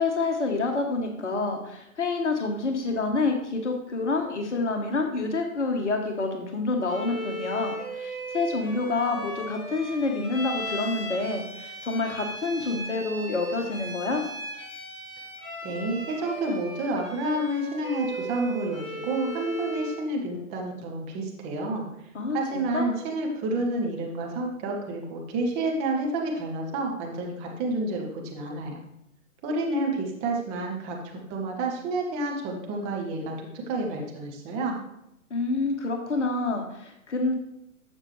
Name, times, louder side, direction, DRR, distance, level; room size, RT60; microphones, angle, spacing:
voice 1, 0.0-14.2 22.1-22.9 35.3-37.3, left 3 dB, 55° left, 3 dB, 1.3 m, -28 dB
Bowed string instrument, 6.9-20.0, right 1 dB, 15° left, 1.9 m, -37 dB
voice 2, 15.6-21.9 22.3-28.8 29.4-34.7, right 2 dB, 15° right, 1 dB, 1.0 m, -29 dB
12.0 x 7.2 x 3.2 m, 0.82 s
figure-of-eight pair, 130°, 43 cm